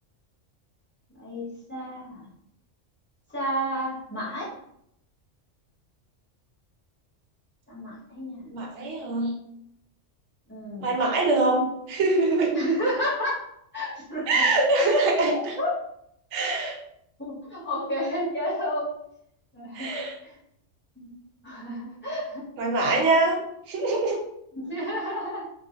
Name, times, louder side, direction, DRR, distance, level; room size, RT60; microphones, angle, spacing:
voice 1, 1.1-2.3 3.3-4.5 7.7-8.5 10.5-11.0 12.5-13.4 13.7-14.9 15.6-15.8 17.2-18.9 19.5-19.9 20.2-20.4 21.0-21.1 21.4-22.5 24.5-25.5, equal, 10° left, -8 dB, 0.7 m, -31 dB
voice 2, 8.5-9.3 10.8-12.6 14.3-15.5 16.3-16.7 19.7-20.1 22.6-23.4 23.7-24.2, right 2 dB, 70° right, 0 dB, 0.9 m, -23 dB
2.3 x 2.0 x 2.7 m, 0.75 s
omnidirectional pair, 1.3 m